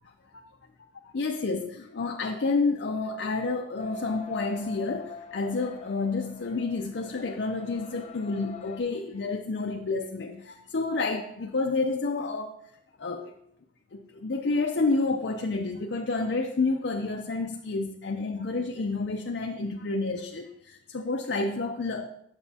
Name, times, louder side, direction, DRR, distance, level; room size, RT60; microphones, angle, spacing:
voice 1, 1.1-12.5 13.0-13.4 13.9-22.1, left 3 dB, 75° left, 3 dB, 0.6 m, -29 dB
sound 1, 3.8-8.8, left 6 dB, 40° left, 0.7 m, -44 dB
8.8 x 6.9 x 2.8 m, 0.74 s
head